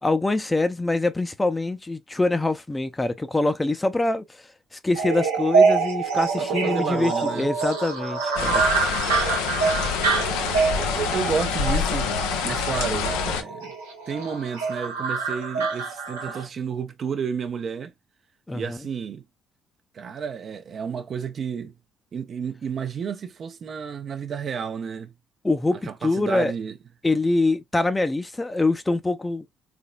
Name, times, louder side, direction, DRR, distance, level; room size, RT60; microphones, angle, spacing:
voice 1, 0.0-4.4 4.7-8.6 18.5-18.8 25.4-26.5 27.0-29.4, left 2 dB, 20° left, 0.7 m, -24 dB
sound 1, 4.9-16.4, right 5 dB, 80° right, 1.0 m, -25 dB
voice 2, 6.4-7.5 10.3-12.1 12.4-13.7 14.1-17.9 18.5-19.2 19.9-21.7 22.1-25.1 25.9-26.7, right 6 dB, 50° right, 0.7 m, -31 dB
sound 2, 8.4-13.4, left 7 dB, 75° left, 0.6 m, -26 dB
3.8 x 3.5 x 2.3 m
figure-of-eight pair, 45°, 0 cm